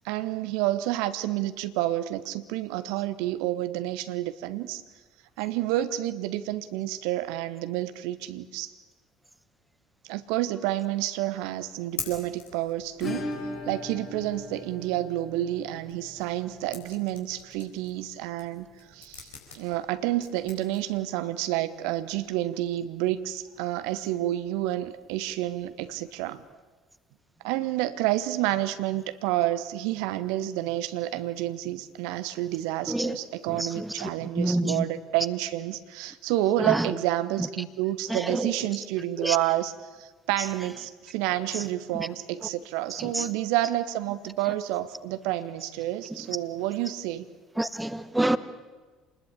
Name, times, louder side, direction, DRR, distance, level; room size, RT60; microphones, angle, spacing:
voice 1, 0.0-4.8 5.4-8.7 10.1-13.3 13.7-26.4 27.4-47.3, right 14 dB, 60° right, 1.1 m, -29 dB
sound 1, 11.7-21.5, left 7 dB, 75° left, 4.5 m, -45 dB
Acoustic guitar / Strum, 13.0-21.6 21.9-22.0 22.2-22.3 22.7-22.8 24.9-25.0 26.1-26.2, left 2 dB, 40° left, 4.5 m, -41 dB
voice 2, 32.9-33.2 33.5-34.1 34.3-34.8 36.6-36.9 38.1-38.6 39.2-39.4 41.5-41.6 41.9-42.1 43.0-43.3 47.6-48.4, right 1 dB, 10° right, 1.4 m, -28 dB
28.0 x 20.5 x 8.6 m
figure-of-eight pair, 55°, 0 cm